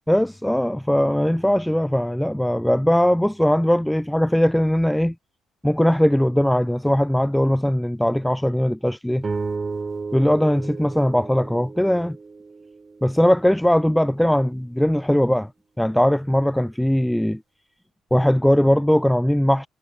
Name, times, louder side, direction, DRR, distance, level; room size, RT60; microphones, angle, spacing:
voice 1, 0.1-5.1 5.6-9.2 10.1-12.2 13.0-15.5 15.8-17.4 18.1-19.7, equal, 5° left, 0.4 m, -20 dB
sound 1, 9.2-13.7, right 4 dB, 30° right, 5.8 m, -33 dB
figure-of-eight pair, 45°, 0 cm